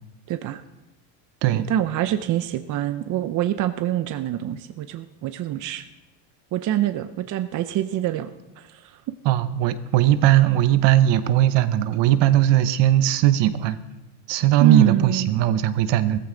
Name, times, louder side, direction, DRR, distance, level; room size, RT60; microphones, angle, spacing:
voice 1, 0.3-0.6 1.5-5.8 6.5-9.0 14.6-15.3, right 11 dB, 40° right, 10 dB, 0.6 m, -25 dB
voice 2, 9.2-13.8 14.3-16.2, right 12 dB, 60° right, 13 dB, 0.9 m, -19 dB
16.0 x 14.5 x 3.9 m, 1.1 s
cardioid pair, 130°, 49 cm